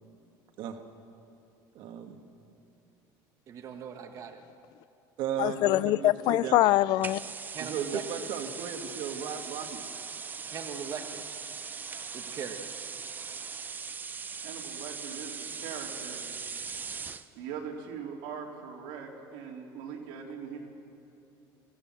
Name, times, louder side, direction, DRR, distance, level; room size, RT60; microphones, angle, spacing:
voice 1, 1.8-2.2 5.2-6.7 7.6-9.8, right 8 dB, 65° right, 1.9 m, -36 dB
voice 2, 3.5-4.4 7.5-8.3 10.5-11.2 12.1-12.7, right 7 dB, 40° right, 1.3 m, -40 dB
voice 3, 5.4-7.2, left 16 dB, 55° left, 0.4 m, -24 dB
sound 1, 7.0-17.3, right 5 dB, 20° right, 0.6 m, -40 dB
voice 4, 14.4-16.2 17.3-20.6, right 7 dB, 90° right, 3.5 m, -41 dB
24.0 x 15.0 x 7.5 m
cardioid pair, 145°, 9 cm